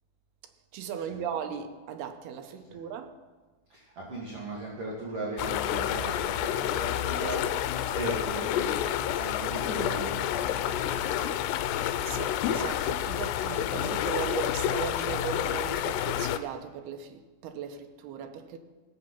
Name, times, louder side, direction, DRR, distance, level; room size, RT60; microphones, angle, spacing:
voice 1, 0.7-3.1 7.2-7.3 12.0-18.6, right 7 dB, 80° right, 2.7 m, -37 dB
voice 2, 3.7-8.7 9.0-11.4, right 2 dB, 45° right, 2.3 m, -38 dB
sound 1, 5.4-16.4, left 11 dB, 85° left, 2.6 m, -29 dB
17.5 x 7.9 x 5.8 m
omnidirectional pair, 5.0 m